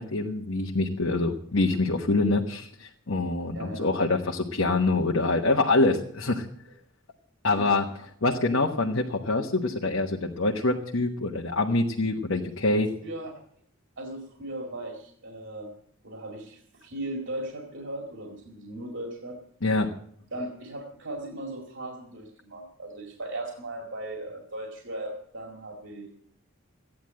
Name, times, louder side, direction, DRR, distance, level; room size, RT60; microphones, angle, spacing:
voice 1, 0.0-6.4 7.4-7.9 8.2-12.9 19.6-19.9, left 2 dB, 75° left, 1 dB, 1.3 m, -25 dB
voice 2, 3.5-3.9 7.6-7.7 8.3-8.4 12.3-12.5 13.0-13.3 14.0-15.7 16.0-19.4 20.3-26.1, right 1 dB, 70° right, 2 dB, 2.3 m, -37 dB
14.5 x 10.0 x 7.6 m, 0.65 s
head